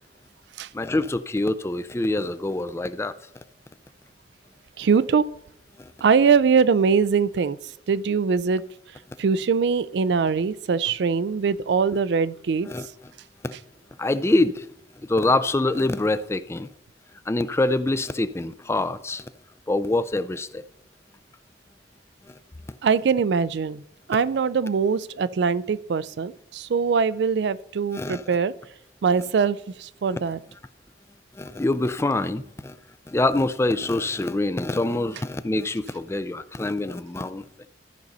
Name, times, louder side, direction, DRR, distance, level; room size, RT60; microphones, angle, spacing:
voice 1, 0.7-3.1 5.8-5.9 12.7-12.9 13.4-13.6 14.0-14.7 15.0-16.7 17.3-19.3 19.7-20.6 22.2-22.4 27.9-28.2 31.3-32.8 33.1-37.4, left 2 dB, 15° left, 0.3 m, -25 dB
voice 2, 4.8-5.2 6.0-7.6 7.9-8.6 9.2-12.7 22.8-23.8 24.1-28.5 29.0-30.4 34.9-35.0, right 5 dB, 70° right, 0.4 m, -22 dB
13.5 x 5.3 x 4.0 m
head